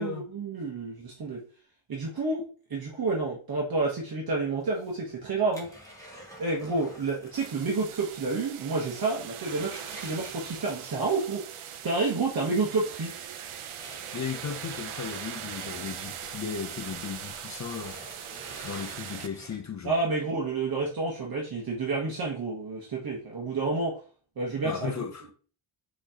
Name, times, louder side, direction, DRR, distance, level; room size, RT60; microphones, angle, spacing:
voice 1, 0.0-1.4 1.9-5.7 6.4-11.6 11.8-13.1 19.8-24.0 24.4-25.1, right 3 dB, 50° right, 1.1 m, -29 dB
sound 1, 4.6-7.6 7.9-8.0 8.4-8.5 8.9-10.9 12.3-12.4 13.1-16.2 16.5-19.9 20.4-20.5, equal, 5° left, 1.5 m, -49 dB
sound 2, 7.3-19.3, right 9 dB, 90° right, 0.6 m, -41 dB
voice 2, 14.1-19.9 24.6-25.3, left 6 dB, 40° left, 0.4 m, -36 dB
5.7 x 3.1 x 2.8 m
wide cardioid pair, 145°, 48 cm